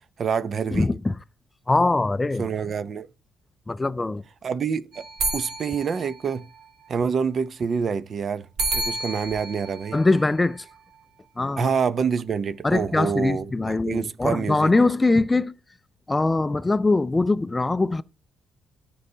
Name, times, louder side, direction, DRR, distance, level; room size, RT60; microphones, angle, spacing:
voice 1, 0.2-0.9 2.4-3.1 4.4-5.0 5.3-6.5 6.9-8.5 8.7-10.0 11.6-14.7, right 6 dB, 50° right, 0.6 m, -26 dB
voice 2, 0.7-1.1 1.7-2.5 3.7-4.2 9.9-10.6 11.4-11.7 12.6-15.5 16.1-18.0, left 2 dB, 20° left, 0.3 m, -22 dB
sound 1, 4.9-6.9 8.6-11.0, right 3 dB, 80° right, 2.8 m, -31 dB
14.0 x 5.4 x 2.8 m
cardioid pair, 90°, 0 cm